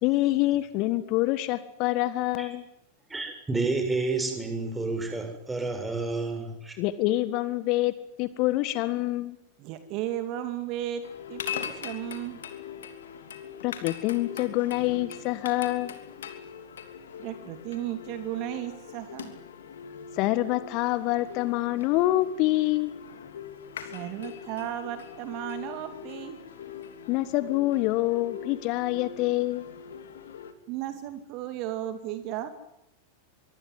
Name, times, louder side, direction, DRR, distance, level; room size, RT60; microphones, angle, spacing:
voice 1, 0.0-2.7 6.8-9.4 13.6-15.9 20.2-22.9 27.1-29.7, left 17 dB, 40° left, 13 dB, 1.6 m, -26 dB
voice 2, 3.1-6.8, right 3 dB, 10° right, 5 dB, 7.2 m, -30 dB
voice 3, 9.6-12.4 17.2-19.3 23.9-26.4 30.7-32.5, right 12 dB, 40° right, 9 dB, 2.5 m, -35 dB
sound 1, 11.0-30.5, left 7 dB, 65° left, 3.1 m, -41 dB
24.5 x 24.0 x 9.8 m, 0.81 s
figure-of-eight pair, 90°, 0 cm